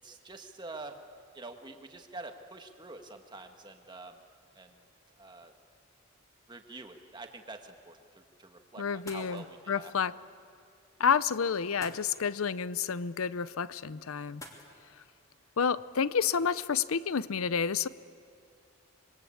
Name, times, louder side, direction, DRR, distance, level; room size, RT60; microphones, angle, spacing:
voice 1, 0.0-1.0 1.3-4.2 4.5-4.7 5.2-5.5 6.5-9.9, right 3 dB, 20° right, 5 dB, 1.6 m, -46 dB
voice 2, 8.8-10.1 11.0-14.4 15.6-17.9, left 6 dB, 85° left, 17 dB, 0.6 m, -29 dB
sound 1, 8.9-17.3, left 1 dB, 15° left, 2.8 m, -55 dB
26.5 x 22.5 x 8.6 m, 2.4 s
head